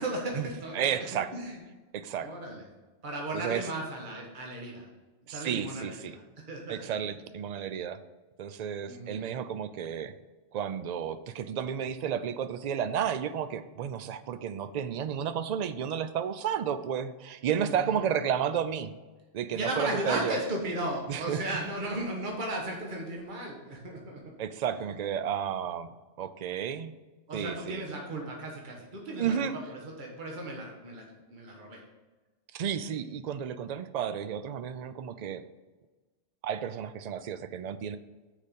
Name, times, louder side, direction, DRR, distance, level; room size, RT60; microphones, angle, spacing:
voice 1, 0.0-1.1 1.3-1.6 2.2-2.6 3.0-4.9 5.3-6.2 6.5-6.9 8.8-9.2 17.6-18.1 19.5-24.2 27.3-31.8, right 1 dB, 45° right, 0 dB, 1.4 m, -35 dB
voice 2, 0.7-1.3 1.9-2.3 3.3-3.7 5.3-6.2 6.7-8.0 8.4-10.1 10.5-18.9 19.3-20.4 21.1-21.4 24.4-25.9 26.2-26.9 27.3-27.8 29.2-29.6 32.5-35.4 36.4-38.0, right 8 dB, 65° right, 11 dB, 0.4 m, -32 dB
6.5 x 5.0 x 5.4 m, 1.2 s
omnidirectional pair, 1.2 m